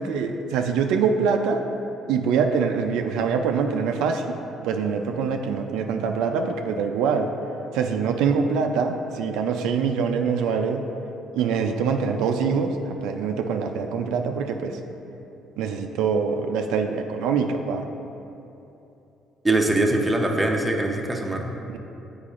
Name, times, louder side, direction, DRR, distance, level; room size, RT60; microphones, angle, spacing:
voice 1, 0.0-1.7 2.1-4.3 4.6-7.3 7.7-10.9 11.3-14.8 15.6-17.9 21.7-21.8, right 6 dB, 90° right, 5 dB, 0.3 m, -24 dB
voice 2, 19.4-21.5, right 2 dB, 10° right, 1 dB, 0.6 m, -22 dB
8.3 x 4.7 x 2.5 m, 2.9 s
cardioid pair, 110°, 0 cm